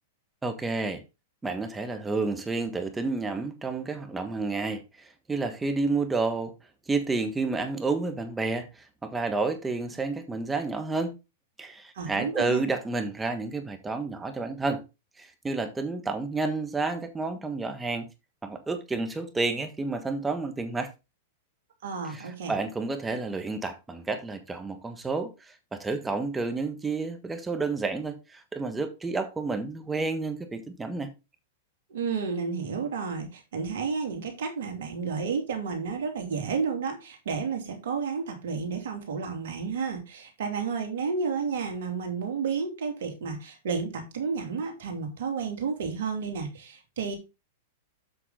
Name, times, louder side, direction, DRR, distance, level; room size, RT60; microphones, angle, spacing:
voice 1, 0.4-1.0 1.4-6.5 6.9-11.1 11.6-14.8 15.2-18.1 18.4-20.9 22.1-31.1, right 3 dB, 10° right, 1.5 m, -30 dB
voice 2, 11.9-12.6 21.8-22.6 31.9-47.2, right 5 dB, 70° right, 2.9 m, -31 dB
7.9 x 5.9 x 4.0 m
hypercardioid pair, 110°, 0 cm